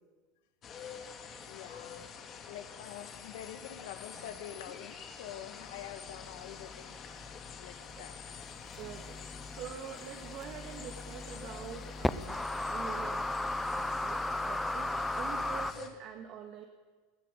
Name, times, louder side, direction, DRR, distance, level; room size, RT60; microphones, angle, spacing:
sound 1, 0.6-15.9, left 6 dB, 25° left, 2.5 m, -47 dB
voice 1, 1.5-2.1 2.5-7.0 7.6-8.3, left 10 dB, 70° left, 8 dB, 2.2 m, -46 dB
sound 2, 5.9-15.7, left 2 dB, 5° left, 0.7 m, -37 dB
voice 2, 8.8-16.6, right 9 dB, 40° right, 4 dB, 2.1 m, -46 dB
20.5 x 16.0 x 9.4 m, 1.4 s
supercardioid pair, 155°, 0 cm